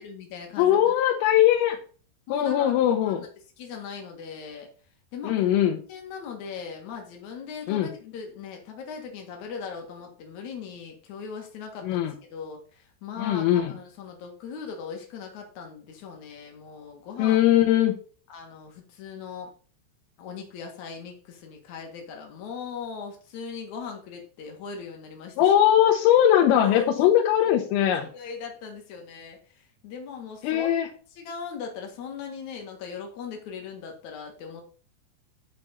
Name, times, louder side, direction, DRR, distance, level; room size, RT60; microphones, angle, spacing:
voice 1, 0.0-0.9 2.3-3.3 3.6-4.7 5.1-5.4 5.9-17.4 18.3-19.5 20.2-25.5 26.6-27.1 27.5-27.8 28.1-30.7 31.1-34.6, left 6 dB, 60° left, 2 dB, 2.0 m, -39 dB
voice 2, 0.6-1.8 2.3-3.2 5.2-5.8 7.7-7.9 11.8-12.1 13.2-13.7 17.2-18.0 25.4-28.1 30.4-30.9, left 11 dB, 85° left, 1 dB, 3.6 m, -20 dB
10.5 x 5.1 x 4.3 m, 0.40 s
omnidirectional pair, 5.7 m